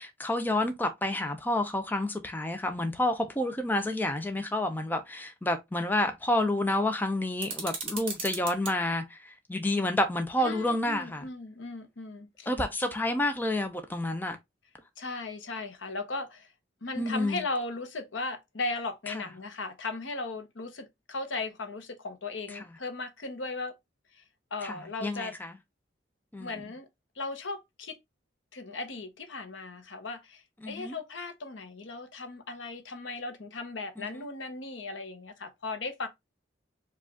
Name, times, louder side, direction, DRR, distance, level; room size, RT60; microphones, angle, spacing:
voice 1, 0.0-11.3 12.5-14.4 17.0-17.4 19.1-19.2 22.5-22.7 24.6-25.5 26.3-26.6 30.6-31.0 34.0-34.2, left 1 dB, 10° left, 0.5 m, -29 dB
sound 1, 7.4-8.7, right 4 dB, 30° right, 1.7 m, -36 dB
voice 2, 10.4-12.5 15.0-16.5 16.8-23.8 24.1-24.2 24.5-25.3 26.4-26.9 27.2-28.0 28.5-36.1, left 3 dB, 85° left, 0.9 m, -37 dB
4.9 x 2.4 x 3.5 m
head